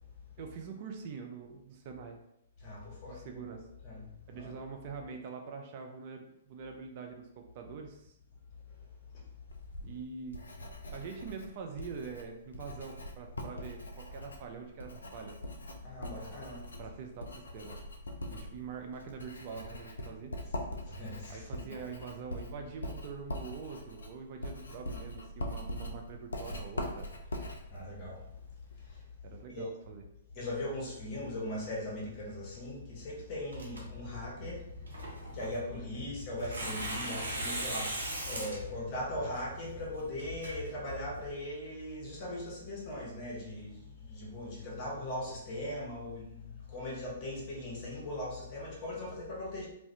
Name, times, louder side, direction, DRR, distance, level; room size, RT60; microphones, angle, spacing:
voice 1, 0.4-2.2 3.1-3.7 4.3-8.1 9.8-10.3 10.9-15.4 16.8-17.8 18.3-20.3 21.3-27.1 29.2-30.0, right 5 dB, 45° right, 4 dB, 0.3 m, -44 dB
voice 2, 2.6-3.5 3.8-4.1 4.3-4.6 15.8-16.6 20.9-21.7 27.7-28.2 29.5-29.6 30.3-34.6 35.3-49.7, left 1 dB, 35° left, -3 dB, 0.9 m, -39 dB
Writing, 9.5-29.0, left 1 dB, 75° left, 0.4 m, -43 dB
Tearing, 33.5-41.3, right 1 dB, 75° right, 0.8 m, -40 dB
2.4 x 2.1 x 2.6 m, 0.79 s
figure-of-eight pair, 115°, 0 cm